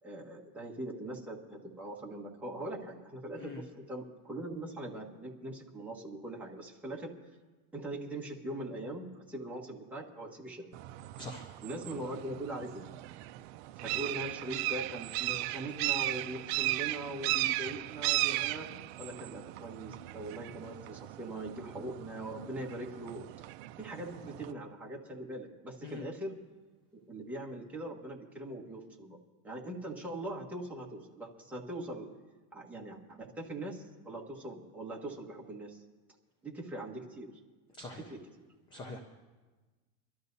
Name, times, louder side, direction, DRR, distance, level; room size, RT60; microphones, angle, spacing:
voice 1, 0.0-7.1 7.7-10.7 11.6-12.9 13.8-18.7 19.0-23.3 23.8-26.4 27.1-29.2 29.4-32.1 32.5-35.8 36.4-37.3 38.0-38.2, right 1 dB, 5° right, -3 dB, 1.4 m, -41 dB
voice 2, 3.4-3.6 11.2-11.5 25.8-26.0 37.8-38.0 38.7-39.0, left 3 dB, 15° left, 4 dB, 0.4 m, -43 dB
sound 1, 10.7-24.5, right 18 dB, 55° right, 0.4 m, -36 dB
25.5 x 12.5 x 2.7 m, 1.3 s
cardioid pair, 175°, 40 cm